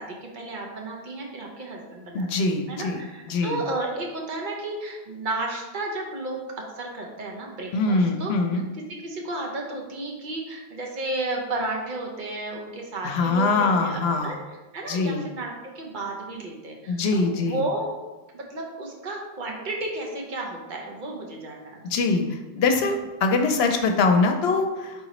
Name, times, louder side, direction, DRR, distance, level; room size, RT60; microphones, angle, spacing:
voice 1, 0.0-8.3 8.7-14.4 14.7-17.9 18.3-21.8, right 2 dB, 55° right, 0 dB, 0.9 m, -33 dB
voice 2, 2.1-3.0 3.3-3.6 7.7-8.6 13.0-14.4 14.9-15.2 16.9-17.6 21.9-24.9, left 3 dB, 75° left, 5 dB, 0.8 m, -23 dB
4.0 x 3.8 x 3.0 m, 1.1 s
omnidirectional pair, 1.1 m